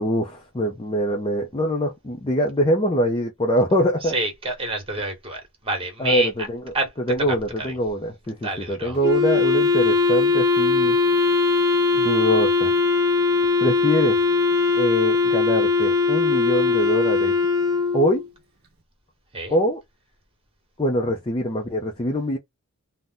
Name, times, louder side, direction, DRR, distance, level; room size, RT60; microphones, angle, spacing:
voice 1, 0.0-4.1 6.0-6.7 7.1-11.0 11.9-12.7 13.6-14.2 14.7-17.3 17.9-18.2 19.5-19.8 20.8-22.4, equal, 20° left, 0.5 m, -23 dB
voice 2, 4.0-6.3 6.7-6.9 7.3-7.7 8.4-9.0 19.3-19.5, right 2 dB, 25° right, 1.2 m, -28 dB
Wind instrument woodwind instrument, 9.0-18.3, left 4 dB, 45° right, 0.8 m, -20 dB
2.8 x 2.1 x 3.6 m
head